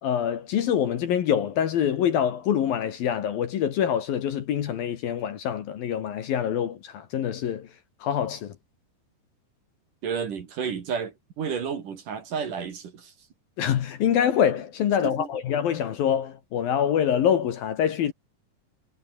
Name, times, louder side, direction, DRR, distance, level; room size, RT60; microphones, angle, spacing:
voice 1, 0.0-7.7 8.0-8.5 13.6-18.1, left 9 dB, 60° left, 3.1 m, -25 dB
voice 2, 10.0-13.1 15.0-15.3, right 6 dB, 50° right, 3.7 m, -31 dB
omnidirectional pair, 5.2 m